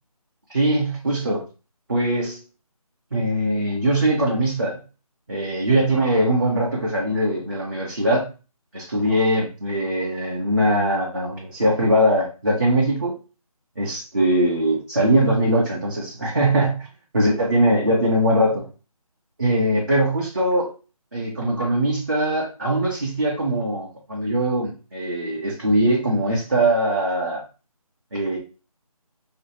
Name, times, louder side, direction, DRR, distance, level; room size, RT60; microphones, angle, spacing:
voice 1, 0.5-1.4 1.9-2.4 3.1-4.8 5.3-8.3 8.7-13.1 13.8-16.9 17.1-18.7 19.4-20.7 21.1-27.4 28.1-28.4, right 1 dB, 35° right, -3 dB, 0.4 m, -21 dB
2.5 x 2.4 x 2.7 m, 0.33 s
figure-of-eight pair, 160°, 19 cm